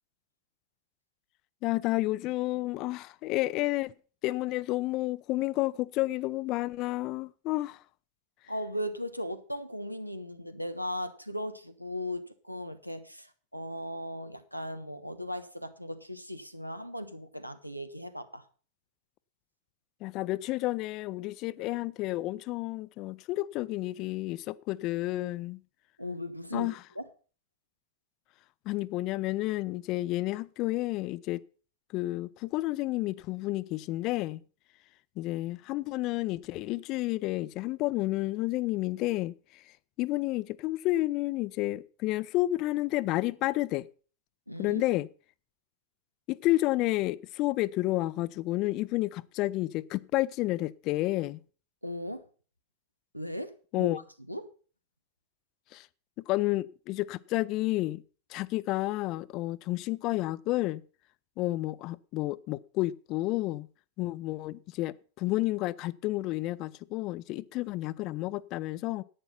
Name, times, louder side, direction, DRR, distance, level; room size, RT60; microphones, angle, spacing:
voice 1, 1.6-3.9 4.2-7.8 20.0-25.6 26.5-26.8 28.7-31.4 31.9-34.4 35.2-39.6 40.0-43.9 44.6-45.1 46.3-51.4 53.7-54.0 55.7-55.9 56.3-58.0 58.3-60.8 61.4-63.7 64.0-69.0, left 18 dB, 40° left, 0.5 m, -30 dB
voice 2, 8.5-18.4 26.0-26.7 26.9-27.1 44.5-44.8 51.8-52.2 53.1-53.9 54.3-54.5, equal, 90° right, 1.2 m, -37 dB
11.0 x 9.0 x 5.7 m
figure-of-eight pair, 90°, 0 cm